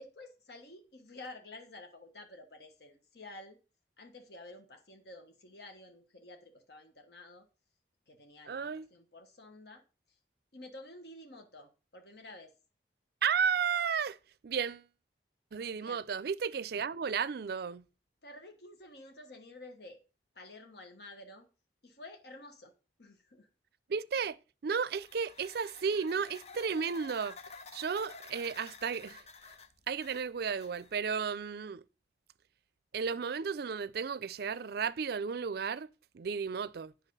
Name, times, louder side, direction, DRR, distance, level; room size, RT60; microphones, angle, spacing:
voice 1, 0.0-3.6 4.0-7.5 8.1-9.8 10.5-12.5 15.8-16.0 18.2-20.0 20.3-21.5 21.8-22.7 23.0-23.5, left 2 dB, 65° left, 1.3 m, -51 dB
voice 2, 8.5-8.9 13.2-14.2 14.4-14.9 15.5-17.9 23.9-27.4 27.7-29.2 29.9-31.8 32.9-35.9 36.1-36.9, right 6 dB, 60° right, 0.4 m, -33 dB
sound 1, 25.0-31.1, left 4 dB, 35° left, 0.7 m, -52 dB
9.1 x 5.9 x 5.4 m
head